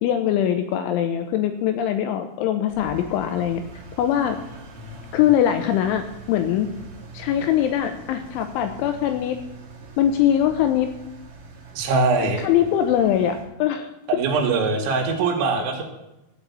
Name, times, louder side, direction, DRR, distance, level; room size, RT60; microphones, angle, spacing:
voice 1, 0.0-3.6 4.0-4.4 5.1-6.7 7.1-9.4 10.0-10.9 12.4-13.9, left 10 dB, 80° left, 8 dB, 2.8 m, -22 dB
Engine, 2.7-13.4, right 2 dB, 45° right, 2.5 m, -43 dB
voice 2, 4.8-5.2 11.7-12.4 14.1-15.8, right 4 dB, 75° right, 2 dB, 4.2 m, -22 dB
14.0 x 5.2 x 8.2 m, 0.91 s
omnidirectional pair, 6.0 m